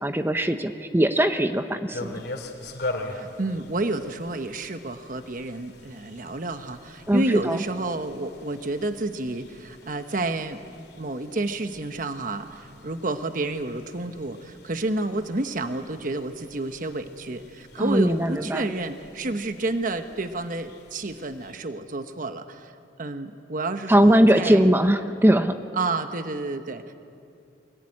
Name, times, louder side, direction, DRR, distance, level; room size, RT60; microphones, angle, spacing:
voice 1, 0.0-2.1 7.1-7.6 17.8-18.7 23.9-25.6, right 1 dB, 15° right, 8 dB, 0.8 m, -20 dB
sound 1, 1.9-21.5, left 2 dB, 65° left, 2.9 m, -42 dB
voice 2, 3.1-22.7 23.0-24.7 25.7-26.9, right 2 dB, 50° right, 9 dB, 1.1 m, -30 dB
24.5 x 20.5 x 9.8 m, 2.5 s
head